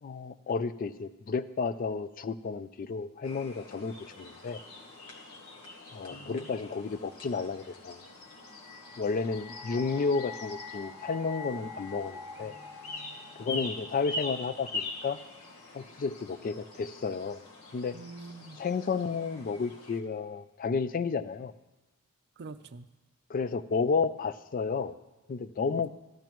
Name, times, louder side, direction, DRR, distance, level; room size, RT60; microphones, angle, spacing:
voice 1, 0.0-4.6 5.9-8.0 9.0-12.5 13.4-15.2 15.7-17.4 17.7-18.0 18.6-21.5 23.3-24.9 25.3-25.9, left 5 dB, 40° left, 13 dB, 0.4 m, -32 dB
sound 1, 3.2-20.0, left 2 dB, 90° left, 1.6 m, -44 dB
voice 2, 6.1-6.6 13.5-13.7 17.9-18.6 22.4-22.9 25.7-25.8, right 3 dB, 50° right, 12 dB, 0.5 m, -45 dB
sound 2, 8.1-15.2, left 4 dB, 20° right, 0.8 m, -46 dB
14.0 x 12.0 x 3.0 m, 1.1 s
head